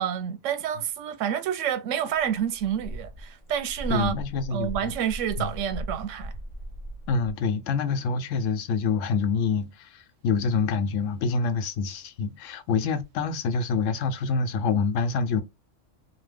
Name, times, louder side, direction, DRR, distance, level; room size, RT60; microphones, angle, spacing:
voice 1, 0.0-4.2 4.5-6.3, right 9 dB, 90° right, 0.9 m, -28 dB
sound 1, 2.2-7.3, right 1 dB, 35° left, 0.5 m, -38 dB
voice 2, 3.9-4.8 5.4-5.5 7.1-15.4, left 5 dB, 90° left, 1.0 m, -26 dB
3.0 x 2.1 x 3.3 m
omnidirectional pair, 1.3 m